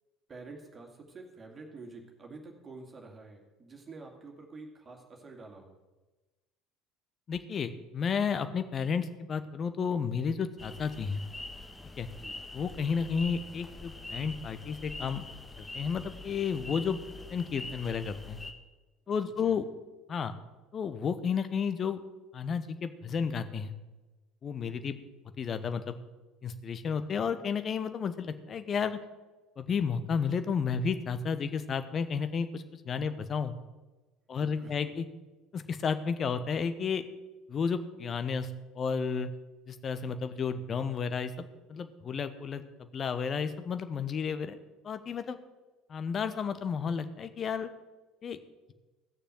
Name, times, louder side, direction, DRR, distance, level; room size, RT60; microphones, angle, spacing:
voice 1, 0.3-5.8 12.1-12.4 19.1-19.6 24.8-25.0 34.3-34.9, right 3 dB, 30° right, 1 dB, 2.4 m, -49 dB
voice 2, 7.3-11.2 12.0-12.1 12.5-15.2 15.6-17.0 17.3-18.4 19.1-19.7 20.1-20.3 20.7-22.0 22.3-23.7 24.4-24.9 25.4-25.9 26.4-29.0 29.6-33.5 34.3-35.0 35.5-37.0 37.5-38.5 38.7-39.3 39.7-42.6 42.9-44.6 44.8-45.4 45.9-47.7 48.2-48.4, left 6 dB, 35° left, 11 dB, 1.0 m, -32 dB
sound 1, 10.6-18.5, left 2 dB, 15° left, 1.4 m, -44 dB
15.0 x 6.7 x 7.8 m, 1.2 s
figure-of-eight pair, 60°, 0 cm